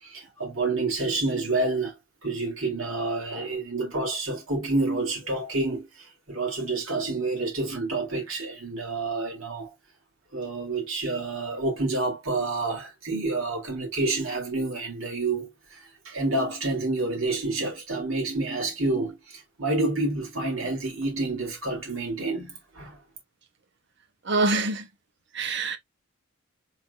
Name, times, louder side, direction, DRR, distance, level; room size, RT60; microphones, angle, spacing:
voice 1, 0.0-9.7 10.3-23.0, right 2 dB, 75° right, 3.0 m, -29 dB
voice 2, 24.3-24.8 25.3-25.8, right 3 dB, 55° right, 1.0 m, -25 dB
4.6 x 3.8 x 2.6 m
head